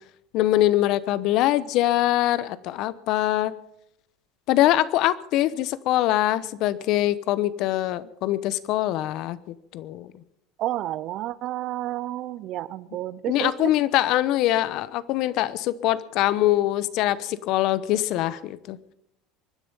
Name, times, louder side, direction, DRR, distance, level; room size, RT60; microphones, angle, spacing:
voice 1, 0.3-3.5 4.5-10.1 13.3-18.8, left 14 dB, 60° left, 16 dB, 0.9 m, -23 dB
voice 2, 10.6-13.7, right 14 dB, 50° right, 19 dB, 0.7 m, -30 dB
23.5 x 10.0 x 5.5 m, 0.78 s
supercardioid pair, 120°, 0 cm